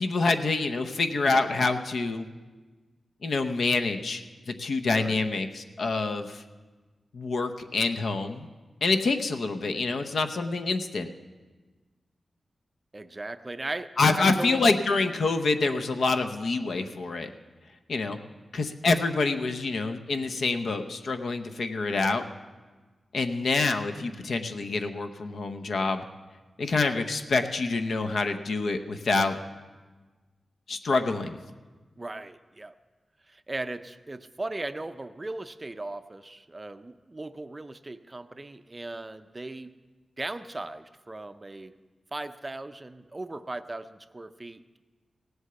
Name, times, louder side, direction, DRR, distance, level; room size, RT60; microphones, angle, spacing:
voice 1, 0.0-2.3 3.2-6.4 7.1-8.5 8.8-11.1 14.0-17.3 17.9-18.2 18.5-22.2 23.1-26.0 26.6-29.4 30.7-31.4, left 3 dB, 70° left, 6 dB, 0.8 m, -26 dB
voice 2, 12.9-14.7 32.0-32.7 33.3-39.8 40.2-41.7 42.1-44.8, right 2 dB, 25° right, 10 dB, 0.5 m, -38 dB
17.5 x 8.1 x 6.8 m, 1.3 s
wide cardioid pair, 125°, 0 cm